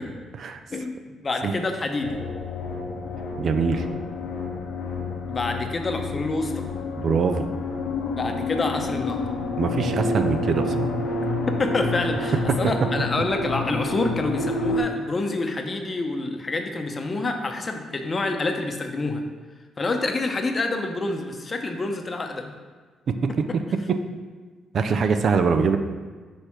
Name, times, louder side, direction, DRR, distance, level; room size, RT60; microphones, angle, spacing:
voice 1, 1.2-2.2 5.3-6.5 8.2-9.3 11.6-19.2 19.8-22.5, left 3 dB, 30° left, 4 dB, 0.7 m, -27 dB
sound 1, 2.0-14.8, left 2 dB, 85° left, 0.8 m, -29 dB
voice 2, 3.4-3.8 7.0-7.5 9.6-10.9 23.1-23.4 23.9-24.0 24.7-25.8, right 5 dB, 55° right, 8 dB, 0.4 m, -23 dB
6.1 x 3.4 x 5.8 m, 1.5 s
cardioid pair, 90°, 0 cm